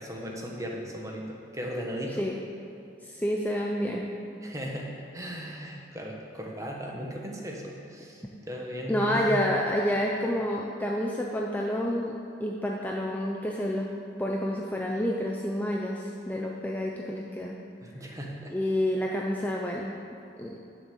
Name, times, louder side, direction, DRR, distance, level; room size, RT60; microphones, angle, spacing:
voice 1, 0.0-2.3 4.4-9.4 17.8-18.5, equal, 15° right, 0 dB, 1.2 m, -37 dB
voice 2, 3.0-4.1 8.9-13.9 14.2-17.5 18.5-19.9 20.4-20.6, equal, 10° left, -2 dB, 0.6 m, -29 dB
11.0 x 6.3 x 7.1 m, 2.8 s
head